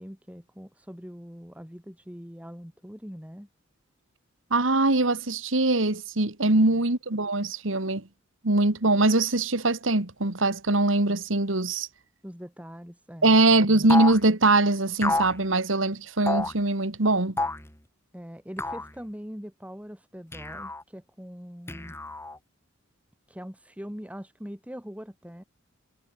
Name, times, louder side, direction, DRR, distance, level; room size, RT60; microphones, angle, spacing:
voice 1, 0.0-3.5 6.5-6.8 12.2-13.4 18.1-22.0 23.3-25.4, equal, 5° right, 3.8 m, -42 dB
voice 2, 4.5-8.0 8.4-11.9 13.2-17.4, right 2 dB, 75° right, 2.2 m, -22 dB
sound 1, 13.9-14.2 15.0-15.4 16.3-16.6 17.4-17.7 18.6-18.9 20.3-20.8 21.7-22.4, left 2 dB, 15° left, 1.4 m, -29 dB
head